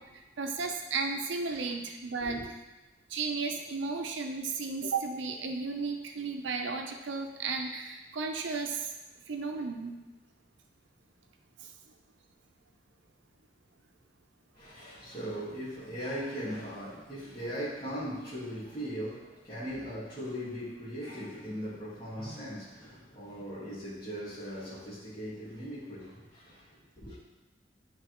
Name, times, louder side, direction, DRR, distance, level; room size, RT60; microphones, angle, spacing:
voice 1, 0.4-2.4 3.1-8.9 9.3-10.0 11.6-11.7, right 4 dB, 80° right, 0.5 m, -34 dB
voice 2, 14.5-27.2, equal, 20° left, 1.6 m, -39 dB
9.9 x 3.3 x 3.0 m
head